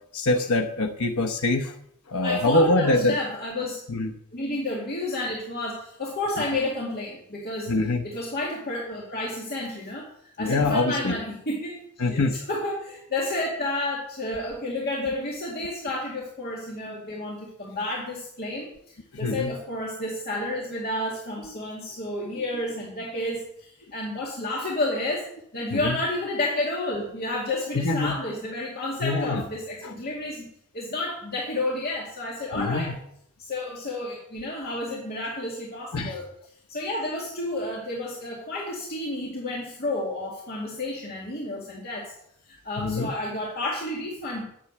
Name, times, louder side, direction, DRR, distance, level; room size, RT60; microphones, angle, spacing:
voice 1, 0.1-1.7 2.1-3.2 3.9-4.1 7.7-8.0 10.4-11.2 12.0-12.4 19.2-19.5 25.7-26.0 27.7-28.2 29.0-29.4 29.8-29.9 32.5-32.9 35.9-36.2 42.8-43.1, left 2 dB, 85° left, 4 dB, 1.0 m, -24 dB
voice 2, 2.2-3.8 4.3-7.7 8.0-10.1 10.4-11.8 12.1-18.7 19.2-30.5 30.7-33.0 33.4-36.3 36.7-42.1 42.6-44.4, left 2 dB, 45° left, -4 dB, 2.4 m, -31 dB
10.5 x 7.2 x 7.9 m, 0.72 s
head